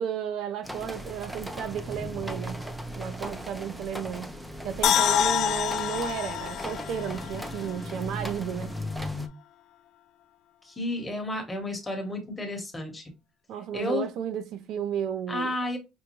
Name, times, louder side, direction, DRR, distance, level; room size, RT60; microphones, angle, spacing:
voice 1, 0.0-2.6 2.9-4.3 4.6-8.7 13.5-15.5, right 8 dB, 60° right, 0.4 m, -33 dB
sound 1, 0.6-9.3, equal, 5° right, 0.5 m, -37 dB
sound 2, 4.8-8.0 8.4-8.5, left 10 dB, 55° left, 0.3 m, -27 dB
voice 2, 10.6-13.0 13.7-14.1 15.3-15.8, left 1 dB, 15° left, 1.1 m, -31 dB
5.2 x 2.2 x 3.0 m
cardioid pair, 130°, 0 cm